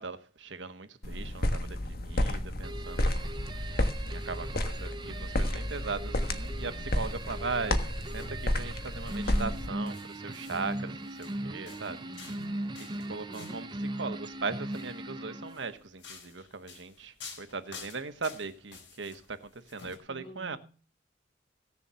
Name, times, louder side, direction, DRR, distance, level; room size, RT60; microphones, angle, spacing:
voice 1, 0.0-3.3 4.1-7.8 8.1-12.0 13.0-13.7 14.0-20.6, right 4 dB, 85° right, 1.2 m, -39 dB
sound 1, 1.0-9.7, left 1 dB, 55° left, 1.5 m, -31 dB
sound 2, 2.6-15.8, right 1 dB, 25° right, 0.8 m, -39 dB
sound 3, 6.2-13.7 14.5-14.9 15.5-20.0, left 5 dB, 85° left, 4.3 m, -51 dB
voice 2, 12.0-12.6 13.3-13.7 20.1-20.6, equal, 30° left, 3.8 m, -49 dB
16.5 x 7.1 x 6.9 m
head